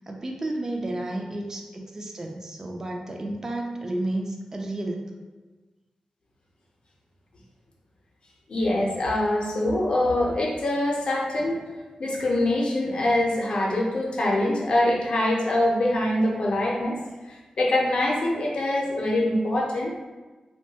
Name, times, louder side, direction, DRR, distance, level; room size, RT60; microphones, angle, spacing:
voice 1, 0.0-5.1, right 1 dB, 25° right, 2 dB, 0.3 m, -32 dB
voice 2, 8.5-11.7 12.0-17.0 17.3-19.9, left 1 dB, 55° left, -3 dB, 0.6 m, -24 dB
3.0 x 2.2 x 2.7 m, 1.3 s
wide cardioid pair, 150°, 2 cm